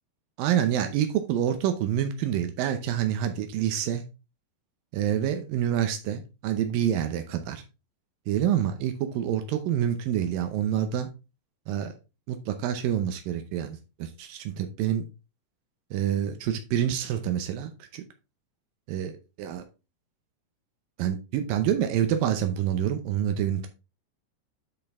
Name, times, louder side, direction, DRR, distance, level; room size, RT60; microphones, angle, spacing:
voice 1, 0.4-4.0 4.9-7.6 8.3-11.1 11.7-11.9 12.3-15.0 15.9-18.0 18.9-19.6 21.0-23.7, right 10 dB, 90° right, 7 dB, 2.0 m, -27 dB
8.4 x 5.3 x 3.5 m, 0.29 s
omnidirectional pair, 5.1 m